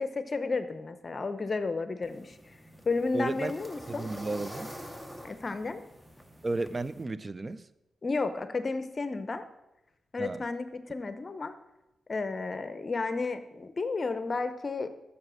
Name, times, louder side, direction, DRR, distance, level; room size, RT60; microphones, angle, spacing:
voice 1, 0.0-2.6 2.9-4.1 5.2-5.8 8.0-9.4 10.1-11.5 12.1-14.9, left 3 dB, 40° left, 0.8 m, -32 dB
sound 1, 2.0-7.0, equal, 5° right, 0.9 m, -46 dB
voice 2, 3.1-3.5 3.9-4.7 6.4-7.7 10.2-10.4, right 2 dB, 35° right, 0.5 m, -33 dB
7.3 x 6.8 x 6.4 m
cardioid pair, 70°, 0 cm